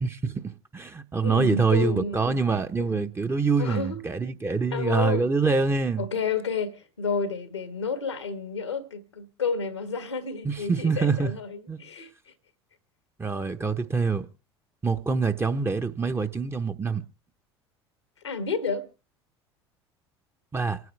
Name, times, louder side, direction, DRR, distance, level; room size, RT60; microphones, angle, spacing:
voice 1, 0.0-6.0 10.4-11.3 11.7-11.8 13.2-14.3 14.8-17.0 20.5-20.8, right 4 dB, 15° right, 1.1 m, -25 dB
voice 2, 1.2-2.4 2.8-3.0 3.6-4.0 4.7-5.2 6.0-12.1 18.2-18.9, left 5 dB, 85° left, 1.5 m, -30 dB
28.0 x 9.5 x 3.3 m
figure-of-eight pair, 70°, 14 cm